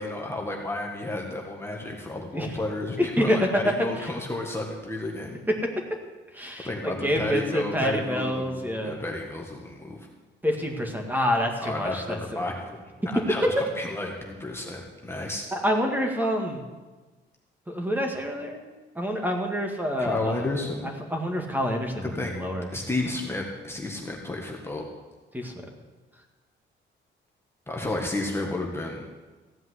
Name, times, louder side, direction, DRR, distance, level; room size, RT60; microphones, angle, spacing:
voice 1, 0.0-5.4 6.6-10.0 11.6-15.5 20.0-20.9 22.0-22.4 22.7-24.8 27.7-29.1, left 2 dB, 10° left, -1 dB, 1.7 m, -32 dB
voice 2, 3.0-3.4 4.0-4.1 6.3-9.0 10.4-12.5 15.5-16.6 17.7-18.6 19.0-20.4 20.8-22.7 25.3-25.5, equal, 10° right, 2 dB, 2.0 m, -27 dB
15.5 x 5.5 x 9.6 m, 1.3 s
cardioid pair, 90°, 20 cm